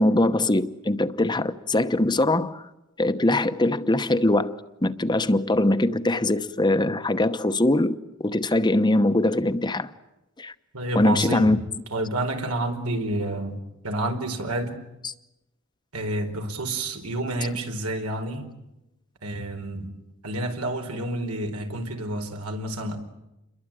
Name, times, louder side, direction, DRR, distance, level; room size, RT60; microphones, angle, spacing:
voice 1, 0.0-2.6 3.0-9.9 10.4-10.5 10.9-11.6 15.0-15.1, left 1 dB, 20° left, 0.9 m, -22 dB
voice 2, 10.7-14.8 15.9-18.5 19.2-19.9 20.2-23.0, right 1 dB, 85° right, 4.4 m, -29 dB
29.0 x 22.5 x 9.0 m
head